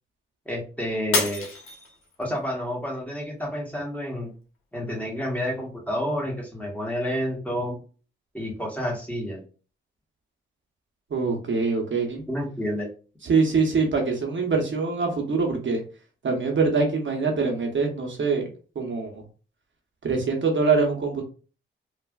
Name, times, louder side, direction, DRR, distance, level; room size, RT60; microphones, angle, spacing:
voice 1, 0.4-1.5 2.2-4.3 4.7-7.7 8.3-9.4 12.3-12.9, equal, 5° left, -2 dB, 1.2 m, -29 dB
Shatter, 1.1-2.4 2.9-3.4 3.9-4.0, left 3 dB, 85° left, 0.9 m, -28 dB
voice 2, 11.1-12.2 13.2-15.8 16.2-18.4 18.7-19.2 20.0-21.2, right 4 dB, 65° right, 2 dB, 0.9 m, -24 dB
3.2 x 2.4 x 2.3 m, 0.36 s
cardioid pair, 65°, 21 cm